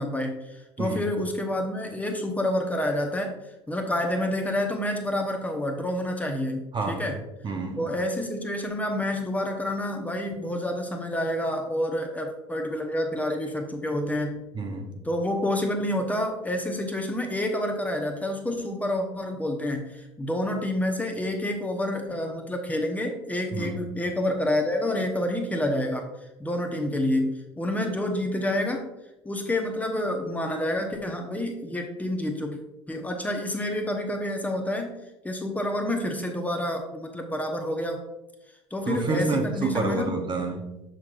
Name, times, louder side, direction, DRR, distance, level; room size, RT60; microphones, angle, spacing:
voice 1, 0.0-3.4 3.7-7.2 7.8-14.4 15.0-26.0 26.4-28.9 29.2-32.6 32.9-35.0 35.2-38.0 38.7-40.2, left 1 dB, 10° left, 3 dB, 1.0 m, -28 dB
voice 2, 6.7-7.1 7.4-8.0 14.5-15.0 23.5-23.8 38.9-40.8, right 3 dB, 30° right, 4 dB, 0.9 m, -29 dB
6.6 x 5.9 x 2.5 m, 0.97 s
hypercardioid pair, 70°, 15 cm